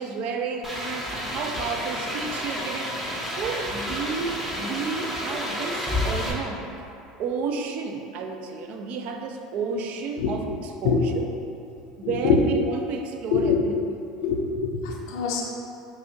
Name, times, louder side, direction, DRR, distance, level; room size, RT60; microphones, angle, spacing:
voice 1, 0.0-2.9 3.3-6.7 7.2-11.3 12.0-14.0, right 4 dB, 55° right, 4 dB, 0.4 m, -31 dB
sound 1, 0.6-6.3, left 1 dB, 10° right, 0.8 m, -30 dB
voice 2, 12.0-12.4 13.3-13.6 14.2-15.4, left 7 dB, 75° left, -1 dB, 0.4 m, -24 dB
4.7 x 2.5 x 2.7 m, 2.8 s
hypercardioid pair, 80°, 3 cm